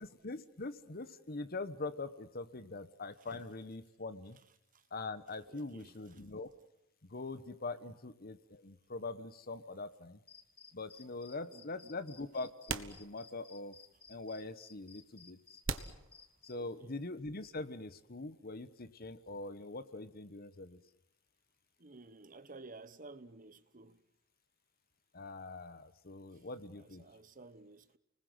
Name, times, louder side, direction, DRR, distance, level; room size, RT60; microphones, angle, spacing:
voice 1, 0.0-4.4 4.9-6.5 7.1-10.2 10.7-13.8 14.1-15.4 16.4-20.8 25.1-27.1, left 3 dB, 45° left, 1.2 m, -43 dB
voice 2, 5.5-5.9 11.5-11.9 16.5-16.9 21.8-24.0 26.3-26.4 26.8-28.0, right 3 dB, 40° right, 1.1 m, -54 dB
sound 1, 10.3-16.5, left 6 dB, 25° left, 2.1 m, -57 dB
sound 2, 10.8-10.9 12.0-12.1 12.7-13.6 13.9-14.0 14.7-14.8 15.6-16.9, right 5 dB, 65° right, 1.3 m, -41 dB
30.0 x 20.0 x 8.0 m
head